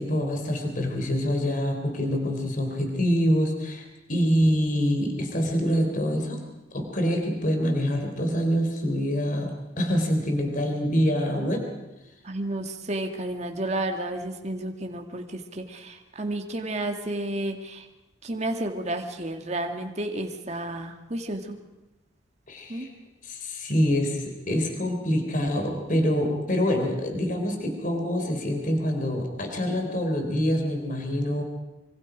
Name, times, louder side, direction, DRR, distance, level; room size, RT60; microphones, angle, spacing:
voice 1, 0.0-6.4 6.7-11.7 22.5-22.9 23.2-31.4, equal, 45° left, 3 dB, 3.6 m, -25 dB
voice 2, 12.2-17.9 18.2-21.6 22.7-22.9, right 1 dB, 35° right, 4 dB, 1.9 m, -31 dB
25.5 x 25.0 x 5.1 m, 1.0 s
head